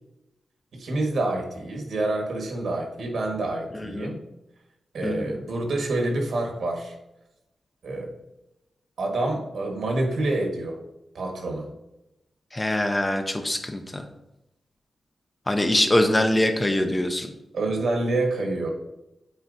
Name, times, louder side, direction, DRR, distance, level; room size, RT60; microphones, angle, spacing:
voice 1, 0.7-4.2 4.9-7.0 7.8-8.1 9.0-10.8 11.1-11.7 17.5-18.7, right 2 dB, 80° right, 1 dB, 1.4 m, -27 dB
voice 2, 5.0-5.3 12.5-14.1 15.5-17.3, left 1 dB, 15° left, 5 dB, 0.5 m, -23 dB
8.1 x 4.4 x 2.6 m, 0.92 s
wide cardioid pair, 155°, 0 cm